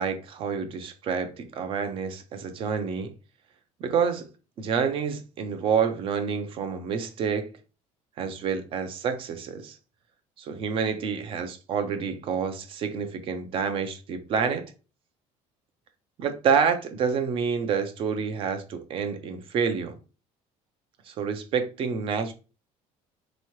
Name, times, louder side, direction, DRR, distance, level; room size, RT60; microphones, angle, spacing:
voice 1, 0.0-3.1 3.8-4.3 4.6-7.5 8.2-9.8 10.4-14.6 16.2-19.9 21.1-22.3, right 6 dB, 45° right, 0.6 m, -28 dB
3.6 x 3.0 x 3.0 m
cardioid pair, 160°, 13 cm